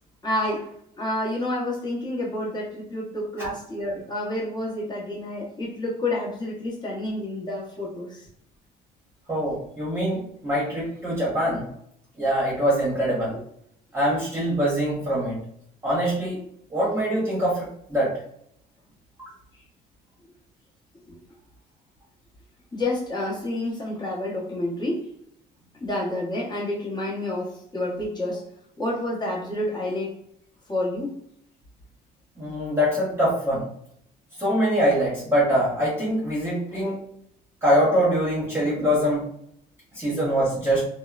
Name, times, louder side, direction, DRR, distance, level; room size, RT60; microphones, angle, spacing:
voice 1, 0.2-0.7 1.0-8.2 21.1-21.2 22.7-25.1 25.8-28.4 28.8-30.1 30.7-31.2, left 1 dB, 25° left, -4 dB, 0.9 m, -29 dB
voice 2, 9.3-11.6 12.2-13.4 13.9-15.4 15.8-16.4 16.7-18.1 32.4-33.7 34.4-37.0 37.6-39.3 39.9-40.9, equal, 15° right, -7 dB, 0.9 m, -23 dB
2.8 x 2.0 x 2.3 m, 0.70 s
cardioid pair, 110°, 17 cm